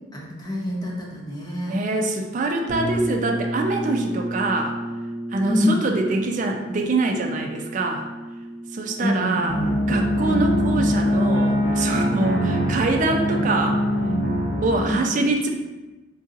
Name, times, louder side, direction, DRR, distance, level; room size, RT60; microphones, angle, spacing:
voice 1, 0.1-1.8 5.5-5.8 9.0-9.7 14.8-15.1, left 1 dB, 20° left, -3 dB, 0.5 m, -26 dB
voice 2, 1.7-4.8 5.3-8.1 8.7-9.6 9.9-13.8 14.6-15.5, right 2 dB, 40° right, 3 dB, 0.3 m, -24 dB
sound 1, 2.7-12.4, right 1 dB, 85° right, 0.6 m, -33 dB
sound 2, 9.5-14.8, equal, 80° left, 0.8 m, -22 dB
3.7 x 2.6 x 2.5 m, 1.1 s
head